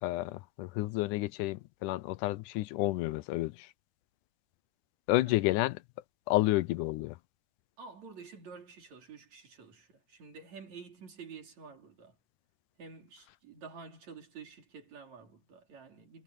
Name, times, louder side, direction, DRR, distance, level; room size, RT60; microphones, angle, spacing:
voice 1, 0.0-3.7 5.1-5.8 6.3-7.2, left 18 dB, 85° left, 2.1 m, -30 dB
voice 2, 7.8-12.2 12.8-16.2, right 5 dB, 60° right, 4.9 m, -50 dB
omnidirectional pair, 3.5 m